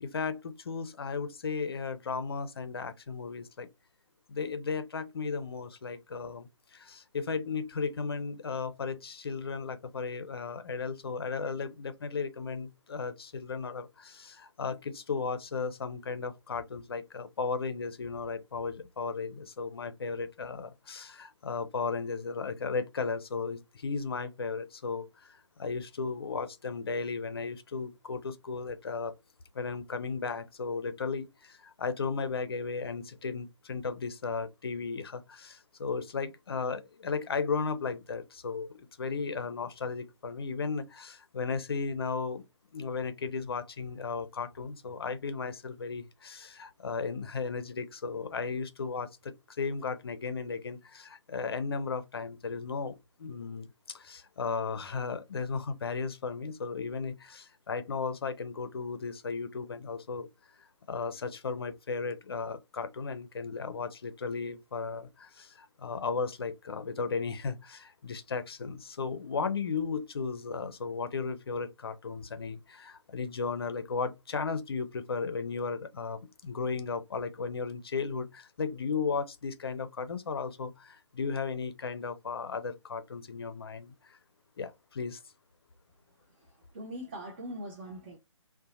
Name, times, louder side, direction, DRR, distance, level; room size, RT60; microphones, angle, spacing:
voice 1, 0.0-3.7 4.3-29.1 29.5-42.4 42.7-60.3 60.9-84.2 84.6-85.2, left 5 dB, 50° left, 0.5 m, -35 dB
voice 2, 86.4-88.2, equal, 20° right, 0.5 m, -42 dB
2.7 x 2.1 x 3.9 m
figure-of-eight pair, 140°, 16 cm